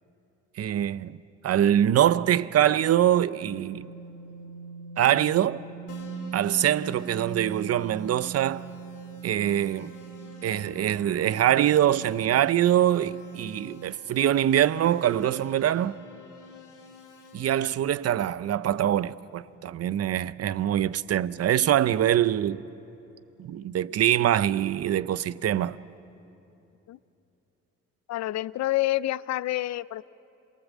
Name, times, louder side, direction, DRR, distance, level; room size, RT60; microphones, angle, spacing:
voice 1, 0.6-1.2 1.4-3.9 5.0-5.6 6.3-8.7 9.2-9.9 10.4-16.0 17.3-22.6 23.4-25.8, right 11 dB, 55° right, 0.6 m, -24 dB
sound 1, 3.8-13.9, right 5 dB, 80° right, 1.6 m, -41 dB
Keyboard (musical), 5.9-17.7, left 5 dB, 85° left, 2.7 m, -50 dB
voice 2, 28.1-30.1, left 16 dB, 65° left, 0.5 m, -28 dB
27.5 x 19.5 x 7.3 m
cardioid pair, 90°, 30 cm